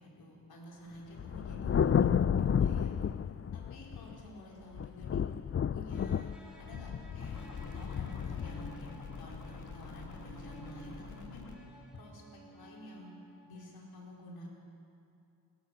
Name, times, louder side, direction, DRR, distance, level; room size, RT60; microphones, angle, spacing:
voice 1, 0.0-2.9 3.5-5.2 5.7-6.3 6.6-11.7 11.9-12.2 12.5-13.2 13.5-14.5, left 1 dB, 80° left, -3 dB, 5.1 m, -49 dB
Thunder, 1.2-4.3 4.7-10.1, left 8 dB, 40° left, 0.5 m, -32 dB
sound 1, 5.9-13.7, right 2 dB, ahead, 5.2 m, -55 dB
sound 2, 7.2-11.6, left 3 dB, 55° left, 2.6 m, -47 dB
29.5 x 13.5 x 6.6 m, 2.6 s
cardioid pair, 55°, 36 cm